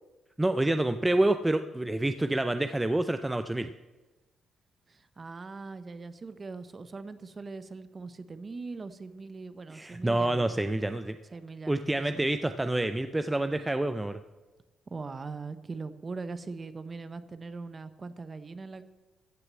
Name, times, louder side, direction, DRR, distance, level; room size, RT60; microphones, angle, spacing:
voice 1, 0.4-3.7 9.7-11.2 11.7-14.2, right 1 dB, 10° right, 9 dB, 0.5 m, -27 dB
voice 2, 4.9-10.4 11.3-11.9 12.1-12.3 14.9-18.8, right 4 dB, 30° right, 12 dB, 0.9 m, -41 dB
15.0 x 6.5 x 7.5 m, 1.2 s
cardioid pair, 90°, 0 cm